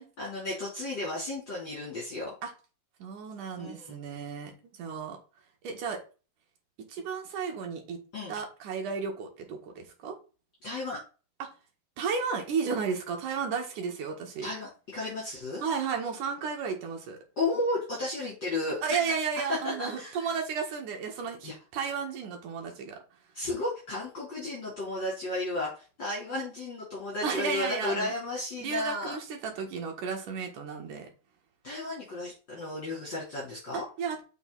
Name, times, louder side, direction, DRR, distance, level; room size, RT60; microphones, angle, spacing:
voice 1, 0.0-2.3 3.6-4.0 8.1-8.4 10.6-11.0 14.4-15.6 17.4-19.1 19.6-20.3 21.4-21.5 23.3-29.2 31.6-33.8, left 2 dB, 30° left, -6 dB, 4.0 m, -33 dB
voice 2, 3.0-5.2 5.6-6.0 6.9-8.0 8.3-10.2 11.4-11.5 12.0-14.5 15.6-17.2 18.8-23.0 27.2-28.1 28.6-31.1 33.7-34.2, right 6 dB, 60° right, 3 dB, 3.1 m, -33 dB
6.9 x 6.3 x 4.1 m, 0.34 s
omnidirectional pair, 4.5 m